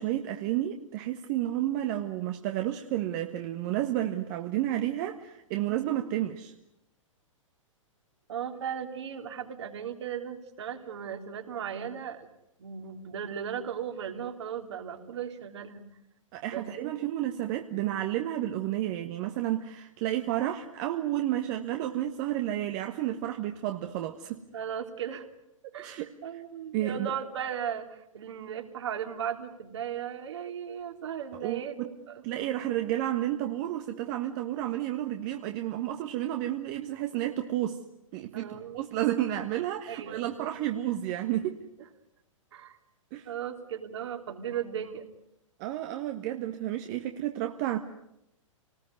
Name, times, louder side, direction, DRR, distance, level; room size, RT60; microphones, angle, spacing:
voice 1, 0.0-6.5 16.3-24.4 25.8-26.4 26.7-27.1 31.4-31.9 32.2-37.8 38.1-41.6 43.1-43.3 45.6-47.8, right 13 dB, 35° right, 5 dB, 1.5 m, -31 dB
voice 2, 8.3-12.3 12.6-15.8 16.4-16.9 24.5-25.3 25.7-32.2 38.3-38.8 39.9-40.5 42.5-42.8 43.2-45.1, right 8 dB, 55° right, 4 dB, 3.4 m, -37 dB
29.0 x 19.5 x 9.5 m, 0.84 s
figure-of-eight pair, 110°, 17 cm